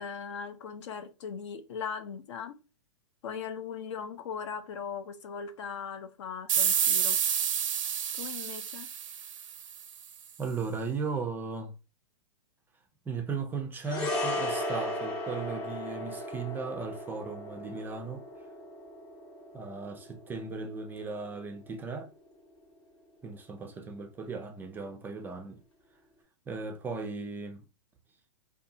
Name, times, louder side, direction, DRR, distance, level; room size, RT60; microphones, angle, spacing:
voice 1, 0.0-2.6 3.2-7.2 8.1-8.9, left 6 dB, 65° left, 0.5 m, -39 dB
sound 1, 6.5-9.8, right 8 dB, 85° right, 0.4 m, -29 dB
voice 2, 10.4-11.7 13.1-18.2 19.5-22.1 23.2-25.6 26.5-27.6, right 4 dB, 10° right, 0.3 m, -36 dB
sound 2, 13.8-22.3 22.6-22.8, left 1 dB, 30° left, 0.7 m, -37 dB
2.6 x 2.3 x 2.5 m
hypercardioid pair, 125°, 16 cm